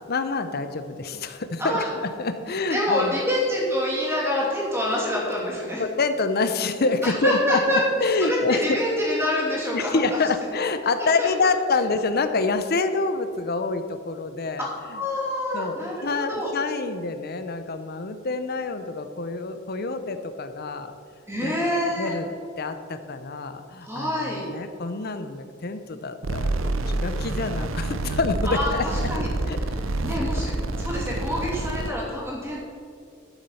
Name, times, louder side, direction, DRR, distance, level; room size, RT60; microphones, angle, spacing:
voice 1, 0.1-3.2 5.8-8.8 9.7-15.0 15.5-20.9 21.4-21.7 22.0-22.3 22.6-29.1 29.5-29.6 30.3-30.4, left 3 dB, 50° left, 9 dB, 0.8 m, -27 dB
voice 2, 2.7-5.8 7.0-7.8 8.2-10.0 11.2-11.3 14.9-16.5 21.3-22.1 23.8-24.5 28.4-29.3 29.7-29.8 30.0-32.6, left 1 dB, 15° right, -4 dB, 3.0 m, -26 dB
sound 1, 26.2-31.9, right 2 dB, 75° right, 0.7 m, -27 dB
11.0 x 7.2 x 5.7 m, 2.5 s
head